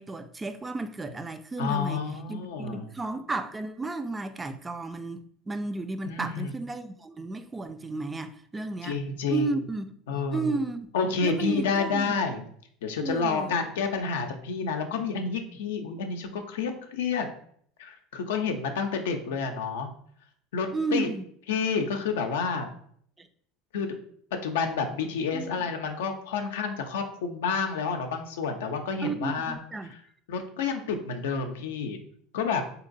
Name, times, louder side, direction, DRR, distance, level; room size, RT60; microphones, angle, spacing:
voice 1, 0.0-2.0 2.3-9.0 9.3-9.9 10.3-10.9 11.2-12.2 13.0-13.6 20.7-21.2 23.2-23.3 25.3-25.5 29.0-29.9, right 3 dB, 20° right, 0.3 m, -33 dB
voice 2, 1.6-2.9 6.0-6.5 8.8-9.6 10.1-10.6 10.9-12.5 12.8-17.3 17.8-19.9 20.5-21.1 21.5-22.7 23.7-24.0 24.4-29.6 29.9-30.0 30.3-32.0 32.3-32.6, left 5 dB, 85° left, 0.5 m, -29 dB
3.8 x 2.8 x 2.5 m
supercardioid pair, 95°, 0 cm